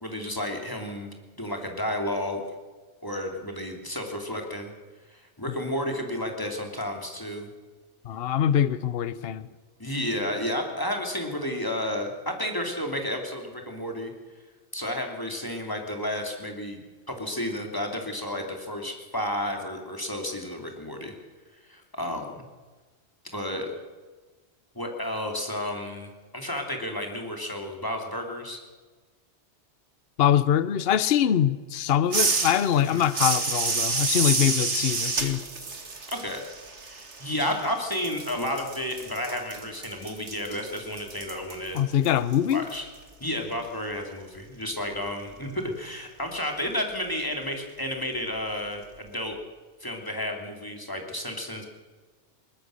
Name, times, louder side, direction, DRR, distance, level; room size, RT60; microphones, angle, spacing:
voice 1, 0.0-1.1 1.4-2.4 3.0-4.7 5.1-7.5 9.8-14.1 14.7-16.8 17.1-21.1 21.6-22.4 23.3-23.7 24.7-28.6 32.8-33.0 36.1-36.4 36.9-41.8 42.5-42.9 43.2-49.4 49.8-51.7, left 1 dB, 20° left, 3.0 m, -32 dB
voice 2, 8.0-9.5 30.2-35.4 41.7-42.6, left 10 dB, 60° left, 0.9 m, -23 dB
sound 1, 32.1-37.6 37.9-42.8, right 4 dB, 85° right, 2.2 m, -29 dB
21.0 x 19.0 x 6.5 m
omnidirectional pair, 1.1 m